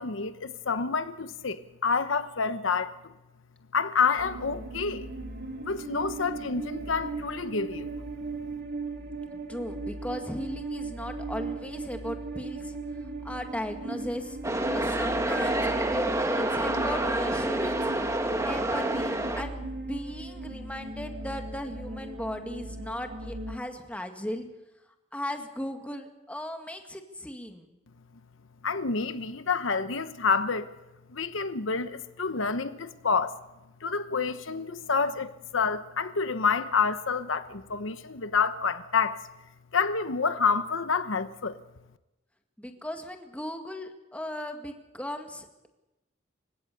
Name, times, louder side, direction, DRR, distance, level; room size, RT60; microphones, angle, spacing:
voice 1, 0.0-3.1 3.7-5.1 5.6-7.9 28.6-30.7 31.1-33.4 33.8-39.2 39.7-41.6, left 5 dB, 75° left, 1.0 m, -28 dB
sound 1, 4.2-23.6, right 2 dB, 55° right, 2.3 m, -38 dB
voice 2, 9.5-12.8 13.2-14.4 14.7-16.1 16.5-17.9 18.4-24.5 25.1-27.7 42.6-45.7, left 1 dB, 5° left, 2.0 m, -37 dB
sound 2, 14.4-19.4, right 1 dB, 15° right, 1.6 m, -28 dB
28.5 x 16.5 x 6.8 m
head